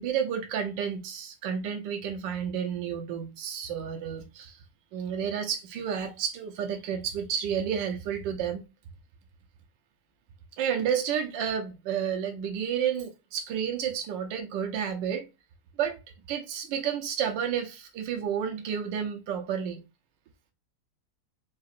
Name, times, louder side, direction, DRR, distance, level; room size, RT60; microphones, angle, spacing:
voice 1, 0.0-4.6 4.9-8.6 10.6-15.3 15.8-16.0 16.3-19.8, right 8 dB, 85° right, 1.4 m, -31 dB
4.0 x 2.4 x 2.4 m
omnidirectional pair, 1.9 m